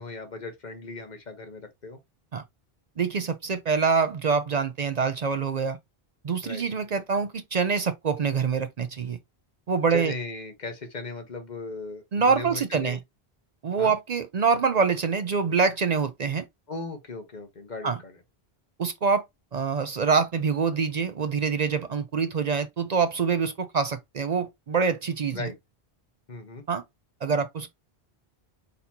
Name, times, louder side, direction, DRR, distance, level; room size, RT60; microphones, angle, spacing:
voice 1, 0.0-2.0 6.4-6.6 9.9-13.0 13.8-13.9 16.7-18.1 25.3-25.6 26.3-26.6, left 3 dB, 45° left, 1.2 m, -37 dB
voice 2, 3.0-5.8 6.2-9.2 9.7-10.1 12.1-13.0 13.6-16.5 17.8-18.0 18.8-19.2 19.5-25.5 26.7-26.8 27.2-27.7, right 5 dB, 50° right, 0.5 m, -25 dB
4.2 x 4.0 x 2.7 m
omnidirectional pair, 1.1 m